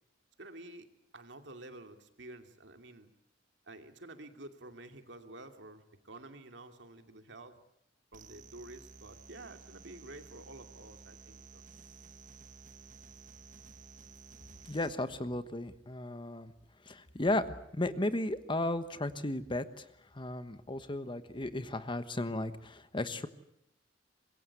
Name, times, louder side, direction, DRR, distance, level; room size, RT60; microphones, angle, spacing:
voice 1, 0.4-3.1 3.7-7.6 8.1-11.6, right 2 dB, 70° right, 6 dB, 2.6 m, -50 dB
sound 1, 8.1-14.9, right 4 dB, 45° right, 1.5 m, -54 dB
voice 2, 14.7-16.5 16.9-19.8 20.1-23.3, left 1 dB, 25° left, 11 dB, 1.2 m, -35 dB
25.0 x 22.0 x 8.4 m, 0.76 s
head